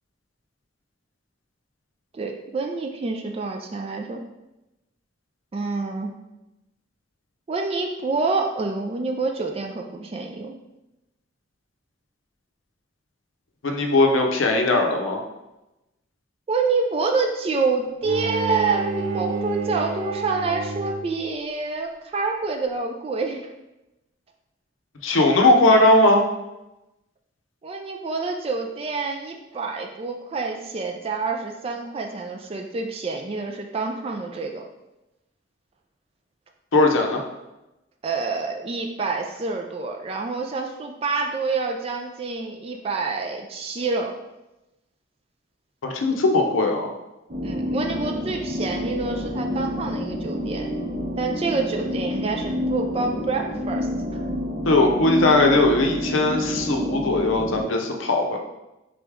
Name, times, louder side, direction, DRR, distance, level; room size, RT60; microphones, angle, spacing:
voice 1, 2.1-4.2 5.5-6.1 7.5-10.6 16.5-23.5 27.6-34.6 38.0-44.1 47.4-50.7 51.2-54.2 54.8-55.3, right 4 dB, 30° right, 2 dB, 0.3 m, -27 dB
voice 2, 13.6-15.2 25.0-26.2 36.7-37.2 45.8-46.9 54.6-58.4, left 2 dB, 80° left, 3 dB, 0.6 m, -19 dB
Bowed string instrument, 18.0-21.3, right 4 dB, 90° right, 0.5 m, -30 dB
sound 1, 47.3-57.6, left 1 dB, 45° right, 0.8 m, -28 dB
3.9 x 3.3 x 3.5 m, 0.97 s
head